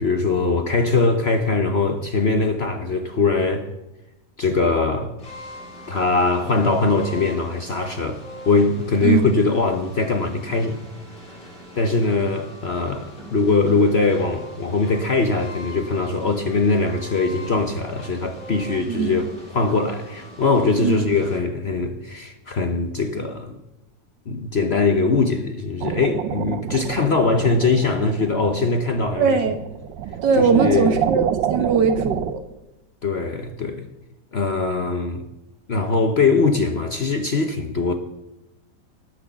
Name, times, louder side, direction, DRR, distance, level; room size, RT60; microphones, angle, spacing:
voice 1, 0.0-3.7 4.4-5.1 5.9-10.8 11.8-19.3 19.5-23.6 24.3-29.3 30.4-31.0 31.6-31.7 33.0-33.9 34.3-35.2 35.7-37.9, left 3 dB, 50° left, 0.9 m, -21 dB
sound 1, 5.2-21.4, equal, 70° left, 6.4 m, -41 dB
voice 2, 18.9-19.2 20.8-21.0 29.2-29.6 30.2-32.4, right 5 dB, 70° right, 1.8 m, -20 dB
sound 2, 25.8-32.3, right 10 dB, 90° right, 1.4 m, -28 dB
18.0 x 6.4 x 7.0 m
omnidirectional pair, 1.9 m